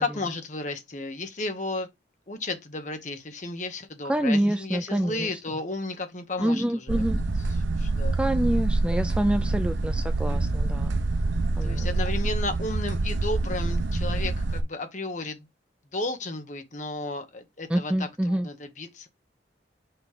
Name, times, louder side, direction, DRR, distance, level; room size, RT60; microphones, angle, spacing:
voice 1, 0.0-1.9 2.3-7.0 7.8-8.2 11.6-15.5 15.9-19.1, left 2 dB, 40° left, 1.2 m, -33 dB
voice 2, 4.1-5.4 6.4-7.2 8.2-10.9 11.6-11.9 17.7-18.5, right 1 dB, 5° right, 0.3 m, -26 dB
sound 1, 6.9-14.6, right 2 dB, 85° right, 0.7 m, -26 dB
5.9 x 3.2 x 5.0 m
head